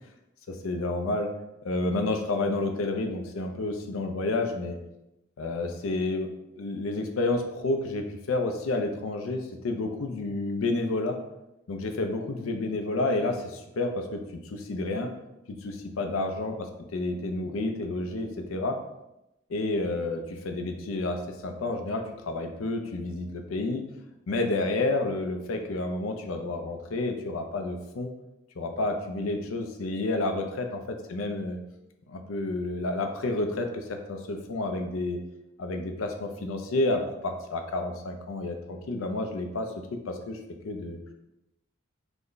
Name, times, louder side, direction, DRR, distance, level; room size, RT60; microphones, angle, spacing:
voice 1, 0.5-1.3 1.6-4.8 5.4-6.3 6.5-11.2 11.7-15.1 15.5-16.5 16.9-18.8 19.5-23.8 24.3-28.1 28.6-31.6 32.1-35.2 35.6-40.4 40.6-41.0, left 2 dB, 85° left, 5 dB, 0.5 m, -30 dB
3.3 x 2.1 x 3.8 m, 0.90 s
head